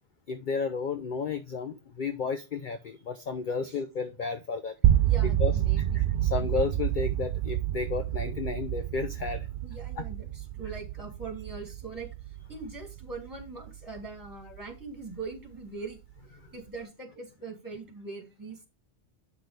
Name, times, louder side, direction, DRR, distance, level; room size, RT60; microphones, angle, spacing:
voice 1, 0.3-4.7 5.4-5.5 5.9-9.5 10.0-10.1, left 5 dB, 50° left, 0.7 m, -32 dB
sound 1, 4.8-14.8, right 12 dB, 55° right, 0.6 m, -28 dB
voice 2, 5.0-6.5 9.6-16.0 16.5-18.7, right 3 dB, 15° right, 2.5 m, -42 dB
8.8 x 6.1 x 3.3 m
omnidirectional pair, 1.3 m